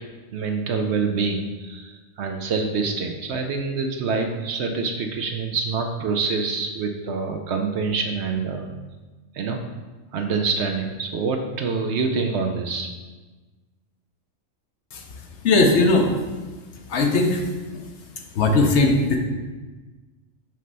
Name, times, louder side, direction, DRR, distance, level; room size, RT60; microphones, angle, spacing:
voice 1, 0.3-8.7 9.3-9.6 10.1-12.9, right 4 dB, 65° right, 4 dB, 0.8 m, -26 dB
voice 2, 15.4-16.1 16.9-17.9 18.3-19.2, left 2 dB, 65° left, 3 dB, 0.9 m, -19 dB
5.9 x 3.1 x 5.4 m, 1.3 s
omnidirectional pair, 1.4 m